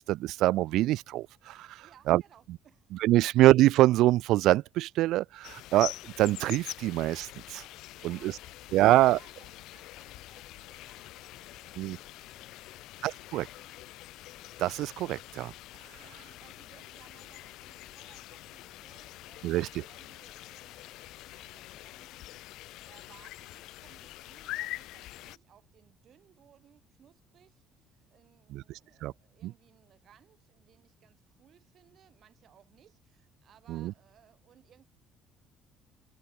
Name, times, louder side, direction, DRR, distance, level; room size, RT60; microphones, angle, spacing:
voice 1, 0.0-2.2 3.0-7.6 8.0-8.3 8.7-9.2 11.8-12.0 13.0-13.4 14.6-15.5 19.4-19.7 28.5-28.6 29.0-29.1 29.4-29.5 33.7-33.9, right 16 dB, 75° right, 0.4 m, -25 dB
voice 2, 1.8-2.9 8.0-13.9 15.9-34.9, right 10 dB, 55° right, 6.9 m, -62 dB
sound 1, 5.4-25.4, left 17 dB, 75° left, 2.2 m, -45 dB
supercardioid pair, 80°, 0 cm